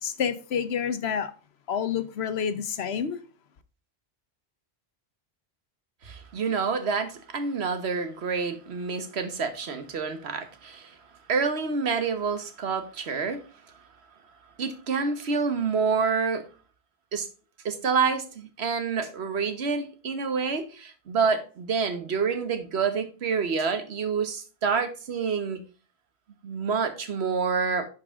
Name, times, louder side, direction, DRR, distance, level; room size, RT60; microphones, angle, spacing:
voice 1, 0.0-1.3 1.7-3.2, left 7 dB, 80° left, 1.1 m, -28 dB
voice 2, 6.0-11.0 11.3-13.4 14.6-16.5 17.1-17.3 17.6-25.6 26.4-27.9, right 5 dB, 80° right, 1.4 m, -28 dB
11.0 x 4.8 x 3.6 m
omnidirectional pair, 1.1 m